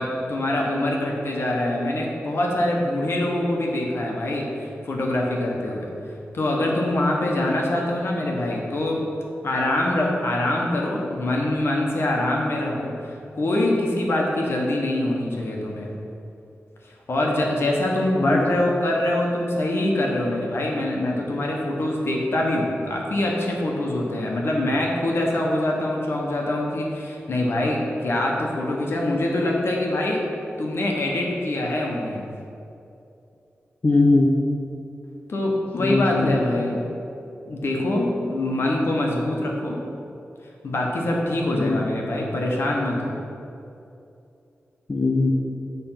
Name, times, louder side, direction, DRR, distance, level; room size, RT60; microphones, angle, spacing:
voice 1, 0.0-5.8 6.3-9.0 9.4-15.9 17.1-30.2 30.6-32.2 35.3-36.8 37.5-39.8 40.6-43.1, left 1 dB, 60° left, -1 dB, 1.0 m, -24 dB
voice 2, 33.8-34.3 35.8-36.3 41.6-41.9 44.9-45.3, left 2 dB, 30° left, -2 dB, 0.5 m, -20 dB
6.7 x 3.3 x 5.7 m, 2.7 s
wide cardioid pair, 125°, 5 cm